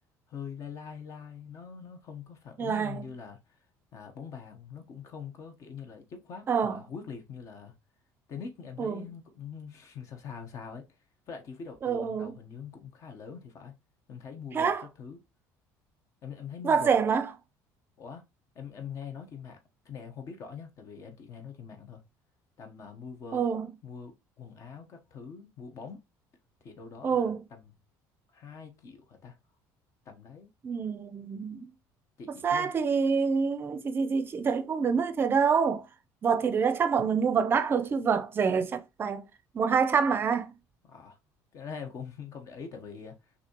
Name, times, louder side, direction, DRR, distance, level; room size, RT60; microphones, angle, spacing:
voice 1, 0.3-3.6 3.9-7.8 8.3-11.0 11.3-13.7 14.1-15.2 16.2-17.0 18.0-18.3 18.5-19.6 19.8-22.1 22.6-23.5 23.8-26.0 26.6-27.6 28.3-29.4 30.0-30.5 32.2-32.7 40.8-41.2 41.5-43.3, left 6 dB, 45° left, 1.1 m, -43 dB
voice 2, 2.6-3.1 6.5-6.8 8.8-9.1 11.8-12.4 14.5-14.8 16.6-17.3 23.3-23.7 27.0-27.4 30.6-31.7 32.3-35.9 36.2-39.3 39.5-40.6, right 6 dB, 30° right, 0.6 m, -26 dB
6.0 x 2.8 x 3.0 m
cardioid pair, 135°, 7 cm